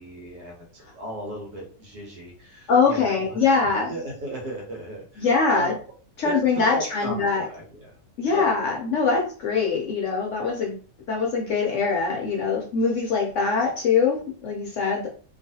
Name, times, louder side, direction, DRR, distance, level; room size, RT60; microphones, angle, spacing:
voice 1, 0.0-5.3 5.5-5.7 6.2-6.3 6.7-7.9 8.3-8.4, equal, 75° right, -2 dB, 1.4 m, -36 dB
voice 2, 2.7-3.9 5.2-5.7 6.2-7.4 8.2-10.8 11.1-15.1, left 5 dB, 65° left, -1 dB, 0.7 m, -23 dB
3.0 x 2.4 x 2.7 m, 0.41 s
omnidirectional pair, 1.8 m